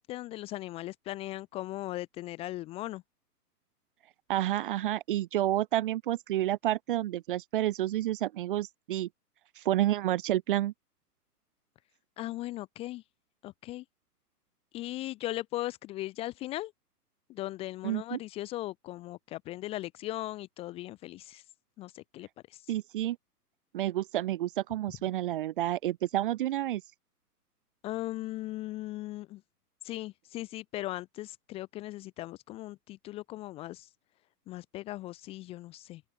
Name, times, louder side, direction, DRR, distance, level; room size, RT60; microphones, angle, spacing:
voice 1, 0.0-3.0 12.2-13.0 13.4-13.8 14.7-16.7 17.3-21.4 21.8-22.7 27.8-29.4 29.8-33.9 34.5-36.0, left 16 dB, 10° left, 0.8 m, -38 dB
voice 2, 4.3-9.1 9.6-10.7 17.8-18.2 22.7-23.2 23.7-26.8, right 13 dB, 35° right, 0.8 m, -29 dB
open air
figure-of-eight pair, 130°, 48 cm